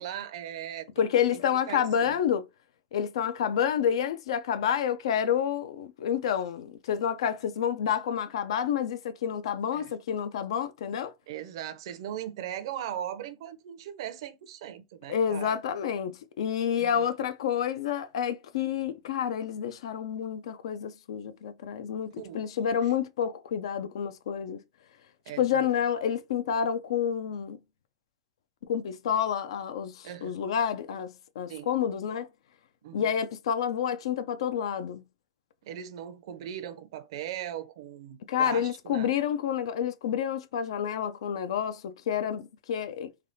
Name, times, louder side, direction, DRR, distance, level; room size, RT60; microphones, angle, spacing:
voice 1, 0.0-0.9 1.3-1.4 1.7-2.2 9.7-9.9 11.3-15.6 16.8-17.0 22.2-22.9 25.3-25.7 30.0-30.4 31.5-31.7 32.8-33.1 35.6-39.1, right 10 dB, 70° right, 0.5 m, -39 dB
voice 2, 1.0-2.4 2.9-11.1 15.1-24.6 25.4-27.6 28.7-32.3 32.9-35.0 38.3-43.1, left 8 dB, 80° left, 0.4 m, -29 dB
3.3 x 2.3 x 2.7 m
supercardioid pair, 130°, 3 cm